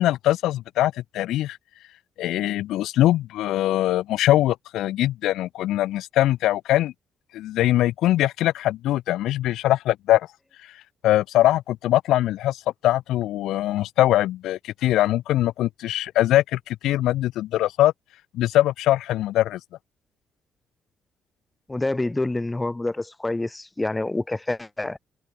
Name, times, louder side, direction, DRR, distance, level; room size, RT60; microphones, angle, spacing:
voice 1, 0.0-1.6 2.2-6.9 7.3-10.3 11.0-17.9 18.3-19.6, left 14 dB, 85° left, 2.5 m, -22 dB
voice 2, 21.7-25.0, left 2 dB, 15° left, 4.3 m, -27 dB
cardioid pair, 90°, 0 cm